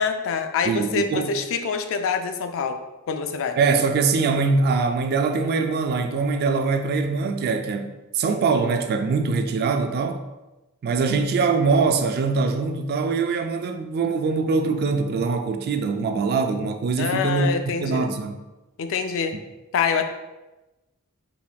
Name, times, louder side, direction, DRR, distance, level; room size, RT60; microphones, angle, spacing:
voice 1, 0.0-2.8 3.1-3.6 17.0-18.1 18.8-19.4 19.7-20.0, left 5 dB, 65° left, 0.4 m, -25 dB
voice 2, 0.7-1.3 3.6-10.2 10.8-17.5 17.8-18.4, right 4 dB, 45° right, 0.3 m, -23 dB
4.0 x 3.3 x 2.2 m
head